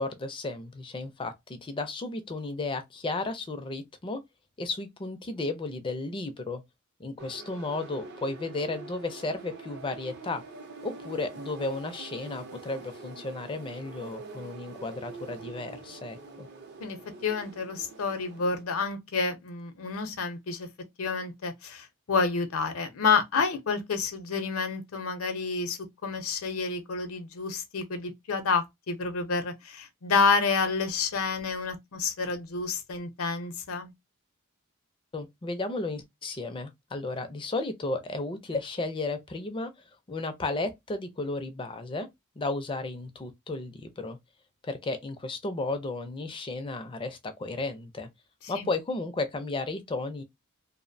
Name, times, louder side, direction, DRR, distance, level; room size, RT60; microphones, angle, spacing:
voice 1, 0.0-4.2 4.6-6.6 7.0-10.4 10.8-16.5 35.1-39.7 40.1-42.1 42.4-44.2 44.6-48.1 48.5-50.2, left 2 dB, 25° left, 0.4 m, -34 dB
sound 1, 7.2-18.6, right 3 dB, 50° right, 0.5 m, -45 dB
voice 2, 17.2-20.7 21.0-33.9 48.6-48.7, left 4 dB, 70° left, 0.6 m, -29 dB
2.5 x 2.0 x 2.5 m
head